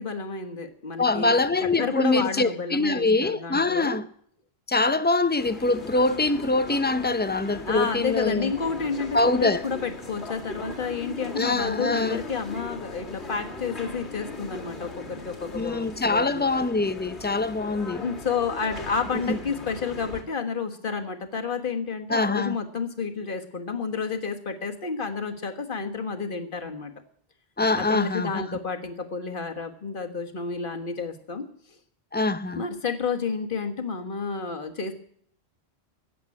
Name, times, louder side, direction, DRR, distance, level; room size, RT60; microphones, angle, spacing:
voice 1, 0.0-1.3 1.6-4.0 7.6-16.5 18.0-26.9 27.8-31.8 32.6-34.9, left 5 dB, 50° left, 1.6 m, -30 dB
voice 2, 1.0-4.1 4.7-8.5 9.1-9.6 11.4-12.2 15.5-18.0 19.3-19.4 22.1-22.6 27.6-28.6 32.1-32.6, left 2 dB, 15° left, 0.4 m, -24 dB
sound 1, 5.4-20.2, left 2 dB, 85° left, 2.7 m, -39 dB
15.5 x 7.8 x 9.7 m
omnidirectional pair, 1.1 m